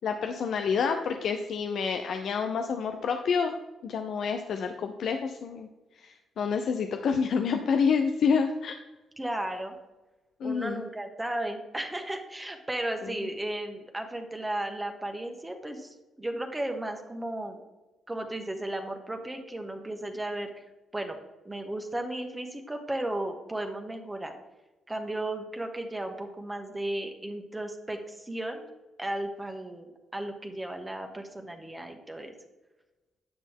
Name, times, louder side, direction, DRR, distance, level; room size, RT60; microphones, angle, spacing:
voice 1, 0.0-3.5 3.8-5.7 6.0-8.7 10.4-10.8 13.0-13.1, left 6 dB, 65° left, 6 dB, 0.5 m, -28 dB
voice 2, 9.2-9.7 10.4-17.6 18.1-20.5 20.9-21.2 21.4-24.3 24.9-28.7 29.0-32.3, right 1 dB, 20° right, 4 dB, 1.4 m, -35 dB
9.5 x 6.1 x 3.6 m, 1.1 s
hypercardioid pair, 45°, 0 cm